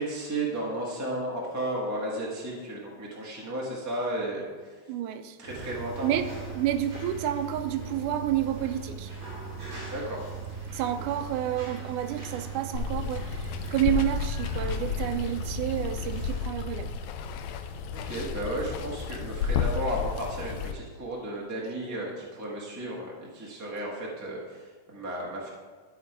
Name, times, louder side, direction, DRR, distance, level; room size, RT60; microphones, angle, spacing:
voice 1, 0.0-4.5 5.4-6.1 9.9-10.2 10.5-10.7 11.0-11.1 17.9-25.5, right 1 dB, 10° right, -4 dB, 0.8 m, -34 dB
voice 2, 4.9-5.4 6.0-9.1 10.7-16.9, right 11 dB, 90° right, 9 dB, 2.1 m, -30 dB
sound 1, 5.5-16.4, right 4 dB, 65° right, 4.6 m, -39 dB
Water, 12.7-20.7, left 6 dB, 80° left, 1.6 m, -32 dB
13.0 x 4.4 x 4.8 m, 1.4 s
omnidirectional pair, 3.5 m